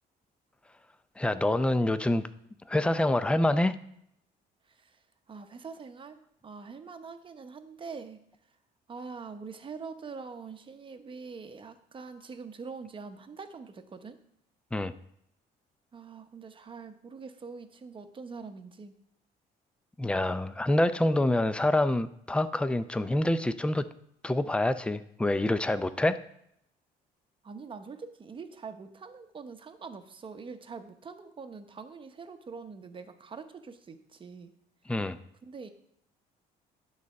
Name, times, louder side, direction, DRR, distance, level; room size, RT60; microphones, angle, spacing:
voice 1, 1.2-2.2 2.7-3.7 14.7-14.9 20.0-23.9 24.2-26.2 34.9-35.2, left 1 dB, 5° left, 13 dB, 0.4 m, -26 dB
voice 2, 5.3-6.2 6.4-8.2 8.9-14.2 15.9-18.9 27.4-34.5 35.5-35.7, right 5 dB, 30° right, 8 dB, 0.8 m, -44 dB
11.0 x 4.1 x 6.4 m, 0.73 s
cardioid pair, 110°, 17 cm